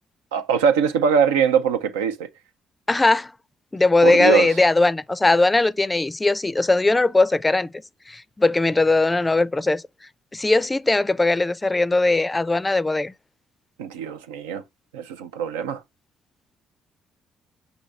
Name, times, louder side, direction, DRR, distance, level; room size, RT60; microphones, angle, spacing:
voice 1, 0.3-2.3 4.0-4.5 13.8-14.6 14.9-15.8, right 7 dB, 90° right, 0.4 m, -22 dB
voice 2, 2.9-3.3 3.7-7.7 8.1-9.8 10.3-13.1, left 2 dB, 20° left, 0.4 m, -19 dB
5.8 x 2.7 x 3.1 m
hypercardioid pair, 50°, 0 cm